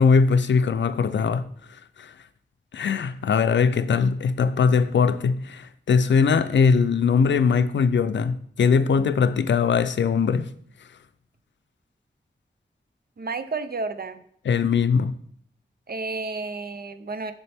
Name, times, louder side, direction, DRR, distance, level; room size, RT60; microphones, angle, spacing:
voice 1, 0.0-1.5 2.0-2.1 2.7-10.5 14.5-15.1, left 5 dB, 90° left, 0.4 m, -21 dB
voice 2, 13.2-14.2 15.9-17.3, right 3 dB, 60° right, 0.6 m, -31 dB
6.9 x 6.6 x 3.4 m
wide cardioid pair, 70°, 18 cm